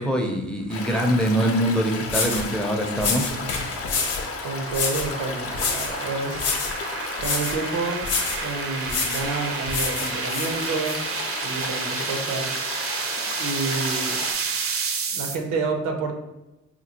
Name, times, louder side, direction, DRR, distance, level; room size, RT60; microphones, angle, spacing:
voice 1, 0.0-3.5, equal, 5° left, 2 dB, 0.5 m, -24 dB
Stream, 0.7-14.3, left 4 dB, 50° left, 0.6 m, -34 dB
sound 1, 1.5-15.4, right 5 dB, 50° right, 0.5 m, -31 dB
sound 2, 1.6-1.7 2.1-2.5 3.0-4.3 4.7-5.1 5.5-6.0 6.3-6.8 7.2-7.6 8.0-8.5 8.9-9.3 9.7-11.0, left 4 dB, 90° left, 0.7 m, -27 dB
voice 2, 4.4-6.5 7.2-8.1 8.4-12.5 13.4-14.2 15.1-16.1, right 3 dB, 90° right, 3 dB, 0.7 m, -29 dB
4.3 x 2.3 x 2.8 m, 0.98 s
cardioid pair, 90°, 30 cm